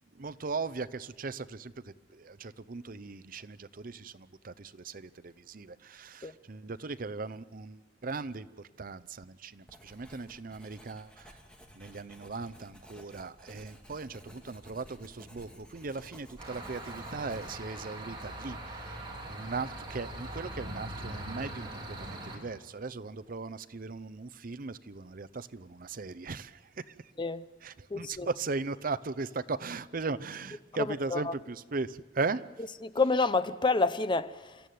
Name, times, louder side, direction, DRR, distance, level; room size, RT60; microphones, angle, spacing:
voice 1, 0.2-1.7 2.1-8.5 8.8-11.4 11.7-19.0 19.3-26.9 27.6-32.4, right 4 dB, 50° right, 0.7 m, -38 dB
Writing, 9.7-17.9, equal, 5° left, 2.3 m, -54 dB
sound 1, 16.4-22.4, right 1 dB, 25° right, 4.1 m, -41 dB
voice 2, 27.9-28.3 31.1-31.3 32.8-34.6, left 3 dB, 25° left, 0.6 m, -28 dB
28.5 x 14.5 x 9.3 m
head